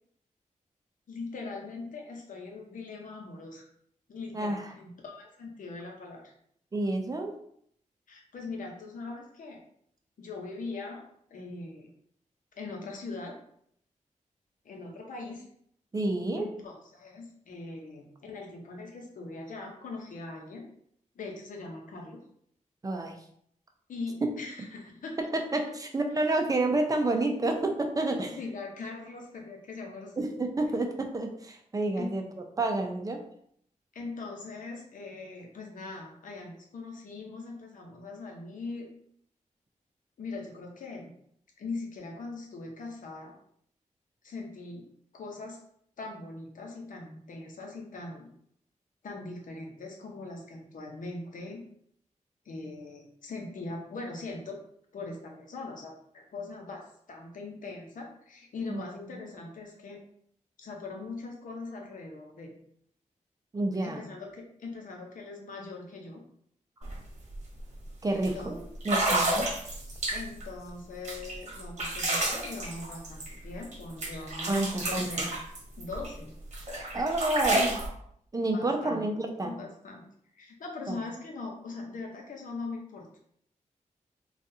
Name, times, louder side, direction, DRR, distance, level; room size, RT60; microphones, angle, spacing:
voice 1, 1.1-3.6 4.1-6.3 8.1-9.6 10.2-11.0 11.3-11.9 12.5-13.4 14.6-15.5 16.4-20.7 21.1-22.2 23.9-25.2 28.2-30.2 32.0-32.1 33.9-38.9 40.2-41.1 41.6-43.4 44.2-44.9 45.1-45.6 46.0-48.3 49.0-51.6 52.4-54.6 54.9-60.0 60.6-62.5 63.8-66.2 68.1-68.6 70.1-75.3 75.8-76.3 78.5-79.0 79.4-80.1 80.3-83.3, left 3 dB, 90° left, 1 dB, 0.8 m, -41 dB
voice 2, 4.3-4.7 6.7-7.3 15.9-16.5 22.8-23.1 25.2-28.4 30.2-32.2 32.6-33.2 58.7-58.8 63.5-64.0 68.0-69.5 74.5-75.1 76.9-77.8 78.3-79.6 80.9-81.0, right 2 dB, 25° right, 3 dB, 0.5 m, -29 dB
sound 1, 66.8-66.9 67.3-67.6 68.2-68.3 68.8-70.5 71.0-73.7 74.0-76.1 76.5-77.9, right 2 dB, 60° right, 1.0 m, -30 dB
3.8 x 2.4 x 2.7 m, 0.68 s
wide cardioid pair, 130°, 13 cm